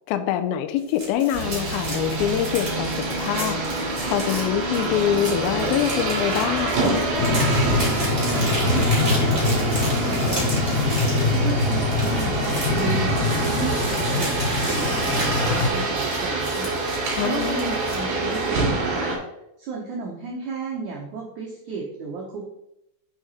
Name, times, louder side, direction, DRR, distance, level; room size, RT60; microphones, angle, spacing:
voice 1, 0.1-7.0 17.2-17.8, left 10 dB, 85° left, 8 dB, 2.1 m, -25 dB
sound 1, 0.8-18.1, right 1 dB, 15° right, 2.1 m, -35 dB
sound 2, 1.3-19.2, right 2 dB, 60° right, 4.1 m, -26 dB
sound 3, 7.2-15.7, left 3 dB, 25° left, 1.9 m, -24 dB
voice 2, 8.2-13.2 13.5-14.4 14.7-16.8 17.1-19.2 19.6-22.5, right 4 dB, 90° right, -2 dB, 1.7 m, -33 dB
9.2 x 5.0 x 4.1 m, 0.84 s
omnidirectional pair, 5.0 m